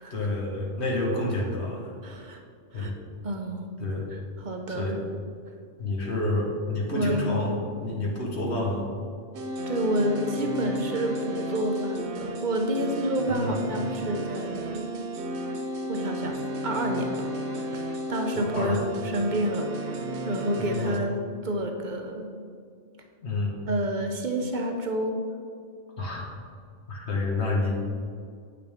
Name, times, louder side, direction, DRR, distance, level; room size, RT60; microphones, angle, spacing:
voice 1, 0.0-1.9 2.7-2.9 3.8-4.1 4.8-5.0 5.8-7.5 7.8-8.8 13.3-13.5 18.3-18.8 20.6-21.0 23.2-23.6 26.0-26.3 26.9-27.7, left 2 dB, 70° left, -2 dB, 1.6 m, -29 dB
voice 2, 2.0-2.4 2.7-2.9 3.2-3.7 4.1-5.0 6.9-7.5 9.7-14.9 15.9-16.4 16.6-17.3 17.7-17.8 18.1-22.3 23.7-25.2, equal, 45° right, 3 dB, 0.8 m, -29 dB
sound 1, 9.3-21.0, right 1 dB, 75° right, 1.0 m, -33 dB
8.8 x 5.9 x 3.6 m, 2.2 s
omnidirectional pair, 1.2 m